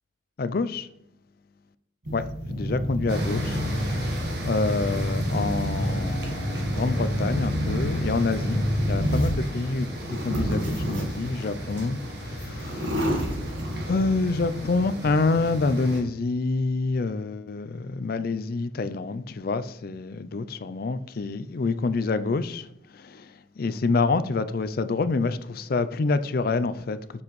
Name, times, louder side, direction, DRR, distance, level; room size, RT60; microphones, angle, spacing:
voice 1, 0.4-0.9 2.1-2.2 2.5-8.6 8.9-13.3 13.9-22.7 22.9-27.0, left 3 dB, 50° left, 0.4 m, -27 dB
sound 1, 2.1-9.5 10.0-11.4 12.0-12.1 12.4-14.0, equal, 75° right, 1.7 m, -28 dB
sound 2, 3.1-16.0, equal, 55° right, 1.6 m, -35 dB
7.3 x 7.0 x 3.1 m
head